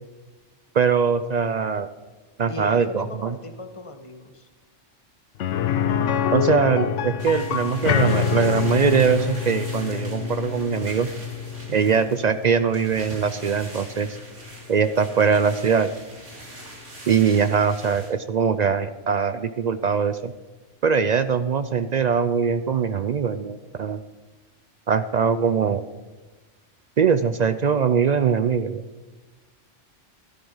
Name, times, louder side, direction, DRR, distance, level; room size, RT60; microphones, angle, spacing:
voice 1, 0.7-1.9 2.4-3.4 6.3-11.1 11.7-14.1 14.7-15.9 17.1-20.3 20.8-24.0 24.9-25.8 27.0-28.8, right 6 dB, 60° right, 12 dB, 0.4 m, -22 dB
voice 2, 2.5-4.5, left 2 dB, 25° left, 6 dB, 1.2 m, -37 dB
sound 1, 5.4-15.2 15.5-15.6 18.0-18.1, left 8 dB, 75° left, 1.0 m, -27 dB
sound 2, 7.2-18.1, right 1 dB, 80° right, 2.9 m, -42 dB
13.0 x 10.5 x 5.5 m, 1.2 s
omnidirectional pair, 1.2 m